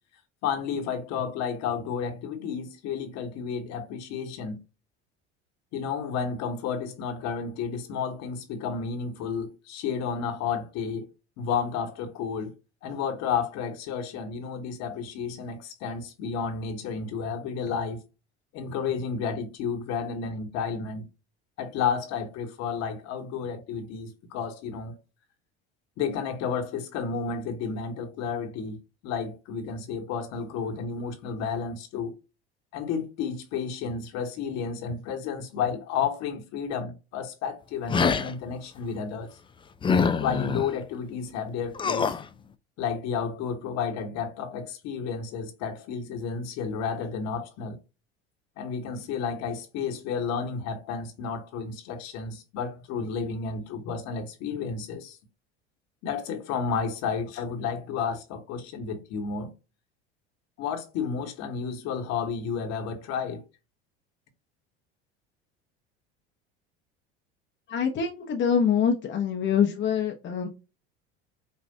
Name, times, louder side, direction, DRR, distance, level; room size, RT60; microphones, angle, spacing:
voice 1, 0.4-4.6 5.7-11.1 11.4-12.5 12.8-18.0 18.5-21.1 21.6-25.0 26.0-28.8 29.0-32.1 32.7-39.4 40.2-42.1 42.8-47.8 48.6-55.2 56.0-59.5 60.6-63.4, left 6 dB, 60° left, 1.3 m, -31 dB
sound 1, 37.9-38.3 39.8-40.7 41.8-42.2, left 5 dB, 15° left, 0.4 m, -24 dB
voice 2, 67.7-70.5, left 7 dB, 40° left, 0.8 m, -25 dB
5.5 x 2.5 x 2.6 m
hypercardioid pair, 80°, 31 cm